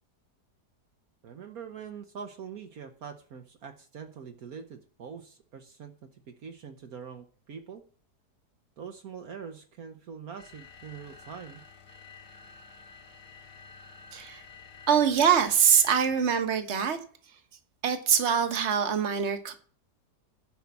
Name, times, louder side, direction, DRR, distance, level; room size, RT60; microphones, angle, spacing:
voice 1, 1.2-7.8 8.8-11.6, right 6 dB, 65° right, 5 dB, 1.5 m, -44 dB
sound 1, 10.4-16.6, left 5 dB, 75° left, 2.3 m, -51 dB
voice 2, 14.1-14.4 14.9-17.0 17.8-19.5, right 7 dB, 45° right, 8 dB, 1.6 m, -24 dB
10.5 x 5.6 x 8.4 m, 0.43 s
omnidirectional pair, 1.7 m